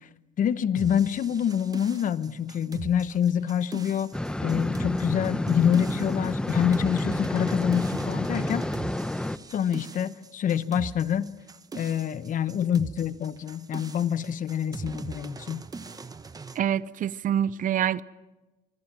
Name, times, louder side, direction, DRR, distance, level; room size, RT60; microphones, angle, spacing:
voice 1, 0.4-4.1 4.4-8.7 9.5-11.3 11.7-15.6, left 9 dB, 50° left, 1.0 m, -26 dB
sound 1, 0.8-16.6, right 4 dB, 20° right, 1.0 m, -41 dB
sound 2, 4.1-9.4, left 1 dB, 5° left, 0.7 m, -29 dB
voice 2, 16.6-18.0, right 10 dB, 50° right, 0.7 m, -26 dB
25.5 x 24.5 x 6.0 m
cardioid pair, 110°, 17 cm